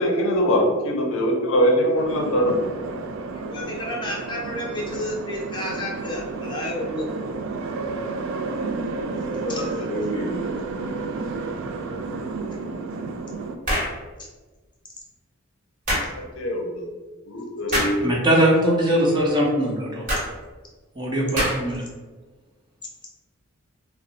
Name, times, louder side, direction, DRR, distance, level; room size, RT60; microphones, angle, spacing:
voice 1, 0.0-2.5 9.4-10.3 16.1-16.9 17.3-18.1, equal, 65° left, 1 dB, 0.5 m, -23 dB
sound 1, 1.9-13.6, right 3 dB, 65° right, 0.3 m, -31 dB
voice 2, 3.3-7.1 9.5-9.8 14.2-14.3 15.9-16.0, left 1 dB, 20° left, -3 dB, 0.7 m, -31 dB
sound 2, 13.6-14.0 15.9-16.1 17.7-18.0 20.1-20.3 21.4-21.8, equal, 40° right, 1.1 m, -24 dB
voice 3, 18.0-20.0 21.0-21.8, right 1 dB, 20° right, -4 dB, 0.6 m, -21 dB
2.6 x 2.0 x 3.9 m, 1.3 s
head